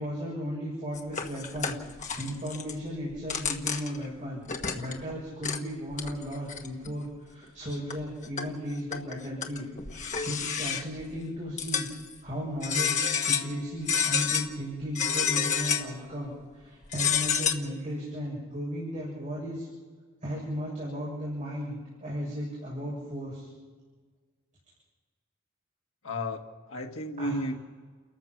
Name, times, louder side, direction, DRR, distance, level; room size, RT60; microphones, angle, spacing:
voice 1, 0.0-4.4 4.7-9.7 9.9-11.9 12.2-19.7 20.2-23.5 27.2-27.4, equal, 35° right, -6 dB, 7.0 m, -35 dB
sound 1, 0.9-2.7 3.1-4.1 4.5-5.1 5.4-5.6 5.9-6.9 7.4-7.5 7.9-8.5 8.9-11.0 11.6-12.1 12.6-13.5 13.9-14.5 14.9-16.0 16.8-17.5, left 7 dB, 35° left, 1.4 m, -29 dB
voice 2, 26.0-27.6, left 1 dB, 65° left, 2 dB, 1.7 m, -33 dB
30.0 x 14.5 x 6.0 m, 1.5 s
head